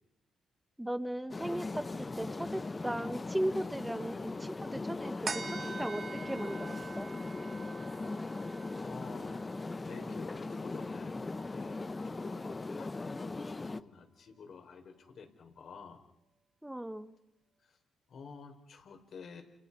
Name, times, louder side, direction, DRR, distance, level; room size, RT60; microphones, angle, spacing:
voice 1, 0.8-7.1 16.6-17.1, right 1 dB, 5° right, 11 dB, 1.7 m, -37 dB
sound 1, 1.3-13.8, left 3 dB, 25° left, 0.9 m, -39 dB
sound 2, 5.3-12.0 12.5-12.6, right 4 dB, 40° right, 2.4 m, -46 dB
voice 2, 8.8-9.4 9.8-16.0 17.6-17.8 18.1-19.4, left 5 dB, 55° left, 4 dB, 5.0 m, -50 dB
29.5 x 29.0 x 5.7 m, 0.84 s
cardioid pair, 90°, 0 cm